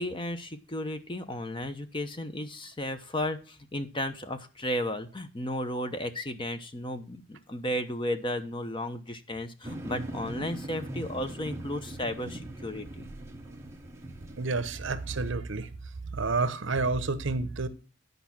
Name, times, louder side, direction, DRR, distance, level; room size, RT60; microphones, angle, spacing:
voice 1, 0.0-13.1, left 1 dB, 25° left, 9 dB, 0.8 m, -34 dB
sound 1, 9.6-15.3, right 1 dB, 15° right, 1.1 m, -41 dB
voice 2, 14.4-15.7 16.1-17.7, right 3 dB, 60° right, 13 dB, 0.9 m, -29 dB
10.5 x 5.3 x 5.9 m, 0.36 s
head